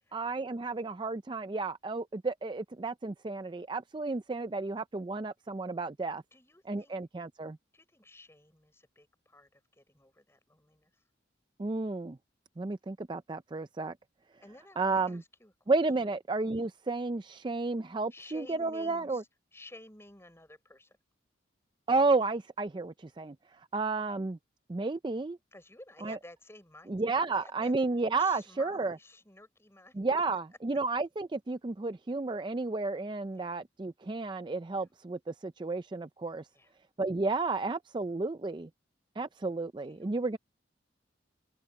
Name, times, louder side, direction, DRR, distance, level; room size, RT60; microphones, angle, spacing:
voice 1, 0.1-6.2 6.7-7.6 11.6-12.2 12.6-13.9 14.8-15.2 15.7-19.2 21.9-23.3 23.7-24.4 24.7-25.4 26.0-26.2 26.9-29.0 30.0-36.4 37.0-38.7 39.2-40.4, right 3 dB, 25° right, 0.4 m, -32 dB
voice 2, 6.3-7.0 7.7-11.0 14.4-15.5 18.1-19.2 19.5-21.0 25.5-27.7 28.2-29.9 33.3-33.5 36.5-36.7 39.8-40.2, left 1 dB, 15° left, 6.6 m, -53 dB
head